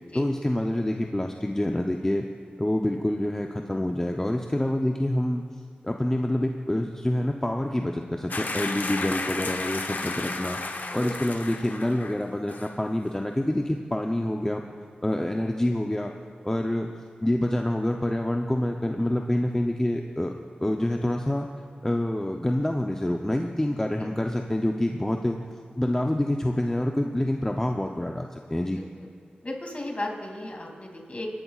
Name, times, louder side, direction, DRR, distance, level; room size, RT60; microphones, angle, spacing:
voice 1, 0.1-2.3 2.6-5.4 5.8-10.6 10.9-14.6 15.0-16.1 16.4-16.9 17.2-20.3 20.6-21.5 21.8-25.4 25.8-28.8, left 1 dB, 15° left, 2 dB, 0.6 m, -27 dB
sound 1, 8.3-12.2 12.5-12.7, left 3 dB, 65° left, 0.8 m, -33 dB
voice 2, 10.8-11.3 24.0-24.1 29.0-29.1 29.4-31.3, left 1 dB, 40° left, 0 dB, 2.5 m, -35 dB
28.0 x 11.0 x 2.4 m, 2.1 s
cardioid pair, 55°, 3 cm